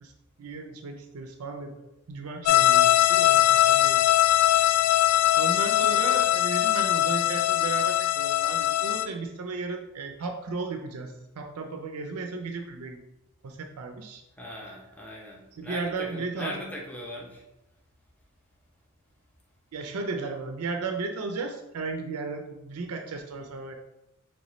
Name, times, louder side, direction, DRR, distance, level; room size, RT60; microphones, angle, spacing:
voice 1, 0.4-4.1 4.5-4.7 5.3-13.0 13.4-14.2 15.5-16.6 19.7-23.7, right 3 dB, 80° right, 5 dB, 0.5 m, -35 dB
sound 1, 2.4-9.1, left 13 dB, 80° left, 0.3 m, -21 dB
voice 2, 14.4-17.4, left 1 dB, 5° left, -3 dB, 0.6 m, -39 dB
5.1 x 3.3 x 3.0 m, 0.94 s
head